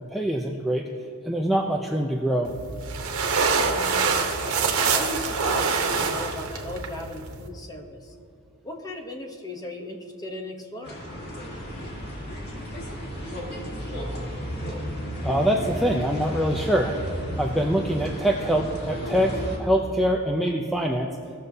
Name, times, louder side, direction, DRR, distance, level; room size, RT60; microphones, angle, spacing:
voice 1, 0.1-0.8 1.2-2.5 15.2-16.9 17.4-21.1, right 1 dB, ahead, 1 dB, 0.4 m, -24 dB
sound 1, 2.4-7.5, right 4 dB, 70° right, 1.0 m, -25 dB
voice 2, 3.7-4.4 4.9-8.1 8.6-11.0, left 1 dB, 15° left, 2 dB, 0.8 m, -37 dB
sound 2, 10.8-19.6, equal, 45° left, 1.7 m, -33 dB
17.5 x 6.7 x 2.7 m, 2.5 s
head